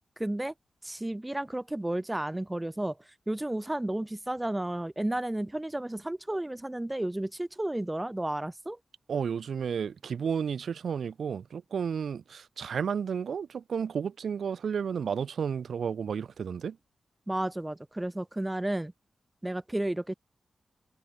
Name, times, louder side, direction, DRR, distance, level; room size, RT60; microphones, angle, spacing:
voice 1, 0.2-0.5 0.8-8.8 17.3-18.9 19.4-20.1, right 1 dB, 15° right, 0.5 m, -32 dB
voice 2, 9.1-16.8, right 7 dB, 80° right, 2.1 m, -32 dB
cardioid pair, 50°, 0 cm